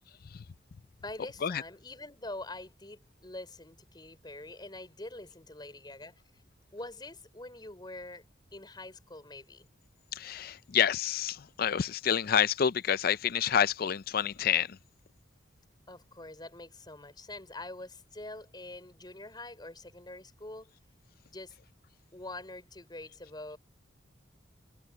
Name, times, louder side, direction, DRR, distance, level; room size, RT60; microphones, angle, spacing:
voice 1, 1.0-6.2 6.7-8.2 8.5-9.7 15.9-20.7 21.2-21.5 22.1-23.6, left 2 dB, 25° left, 4.6 m, -45 dB
voice 2, 10.1-14.8, left 8 dB, 50° left, 0.4 m, -28 dB
head